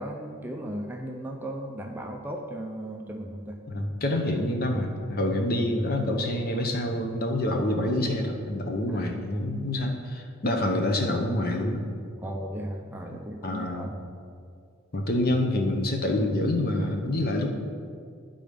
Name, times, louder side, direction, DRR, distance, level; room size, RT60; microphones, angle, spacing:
voice 1, 0.0-3.6 8.9-9.1 12.2-14.0, right 1 dB, 10° right, 2 dB, 0.4 m, -36 dB
voice 2, 3.7-11.8 13.1-13.9 14.9-17.5, left 1 dB, 45° left, 3 dB, 0.8 m, -27 dB
10.0 x 3.9 x 5.0 m, 2.2 s
head